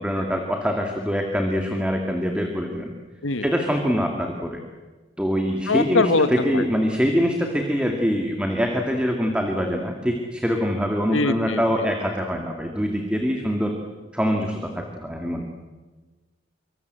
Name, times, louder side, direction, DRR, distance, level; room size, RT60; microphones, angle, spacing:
voice 1, 0.0-2.9 3.4-4.6 5.2-13.7 14.1-15.4, equal, 5° right, 2 dB, 2.2 m, -24 dB
voice 2, 5.7-6.7 11.1-11.6, left 3 dB, 85° left, 9 dB, 2.0 m, -22 dB
25.5 x 24.0 x 8.1 m, 1.3 s
head